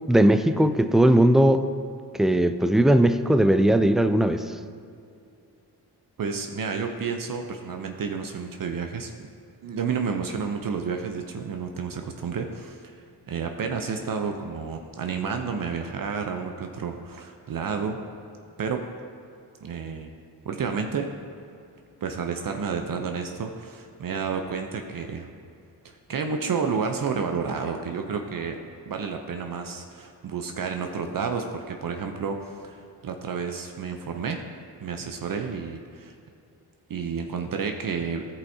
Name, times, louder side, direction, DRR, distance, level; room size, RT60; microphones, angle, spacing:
voice 1, 0.1-1.7 2.2-4.5, right 1 dB, ahead, 10 dB, 0.3 m, -19 dB
voice 2, 6.2-9.1 9.6-12.8 13.3-18.0 18.6-18.8 19.6-20.1 20.4-21.1 22.0-25.3 25.8-28.6 28.9-34.4 34.8-36.1 36.9-38.3, right 5 dB, 55° right, 4 dB, 0.7 m, -30 dB
13.5 x 5.5 x 2.8 m, 2.5 s
supercardioid pair, 50°, 42 cm